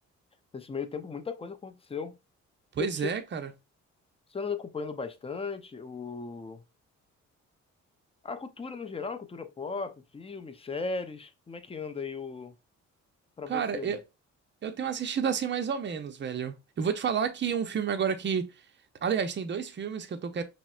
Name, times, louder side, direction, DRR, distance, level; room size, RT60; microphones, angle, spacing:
voice 1, 0.5-2.1 2.8-3.1 4.3-6.6 8.2-12.6 13.4-14.0, left 4 dB, 20° left, 0.6 m, -37 dB
voice 2, 2.7-3.5 13.5-14.0 14.6-18.5 19.0-20.4, right 7 dB, 35° right, 0.7 m, -30 dB
5.9 x 2.1 x 2.4 m
cardioid pair, 90°, 30 cm